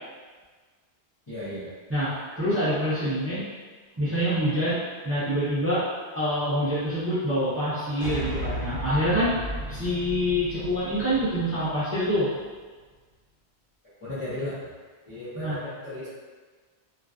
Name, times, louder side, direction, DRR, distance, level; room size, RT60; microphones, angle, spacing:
voice 1, 1.3-1.7 14.0-14.6 15.0-16.1, left 1 dB, 35° left, -12 dB, 0.6 m, -35 dB
voice 2, 1.9-3.4 4.0-4.8 5.0-5.8 6.1-9.3 9.7-12.3 15.4-15.6, equal, 20° right, -11 dB, 0.4 m, -26 dB
sound 1, 8.0-12.4, right 1 dB, 80° right, 0.9 m, -35 dB
2.4 x 2.2 x 2.3 m, 1.4 s
omnidirectional pair, 1.1 m